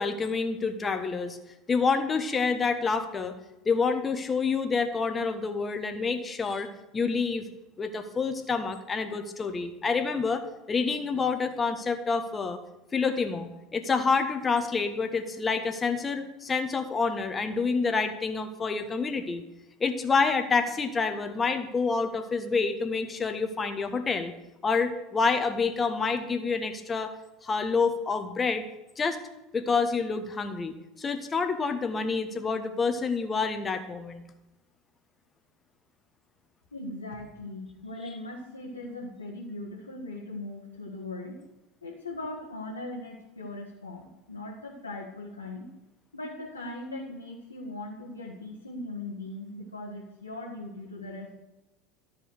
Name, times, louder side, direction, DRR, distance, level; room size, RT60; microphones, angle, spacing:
voice 1, 0.0-1.4 1.7-3.4 3.6-6.7 6.9-7.5 7.8-12.6 12.9-19.4 19.8-24.3 24.6-27.1 27.4-28.6 29.0-29.2 29.5-34.2, left 4 dB, 20° left, 8 dB, 1.2 m, -28 dB
voice 2, 36.7-41.4 41.8-45.7 46.1-51.4, left 2 dB, 85° left, -3 dB, 1.4 m, -39 dB
13.0 x 5.0 x 6.5 m, 0.98 s
figure-of-eight pair, 75°, 0 cm